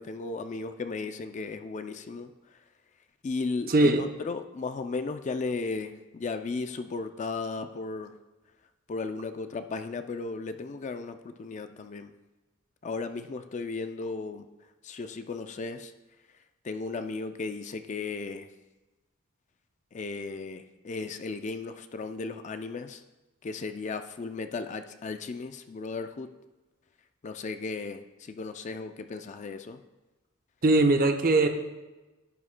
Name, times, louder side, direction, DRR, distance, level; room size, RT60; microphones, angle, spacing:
voice 1, 0.0-2.6 3.2-8.1 8.9-12.1 12.8-14.5 14.8-15.9 16.6-18.5 19.9-23.0 23.4-26.3 27.2-29.8, left 4 dB, 35° left, 8 dB, 0.4 m, -35 dB
voice 2, 3.7-4.0 30.6-31.5, right 2 dB, 45° right, 5 dB, 0.7 m, -21 dB
11.0 x 11.0 x 2.2 m, 1.1 s
head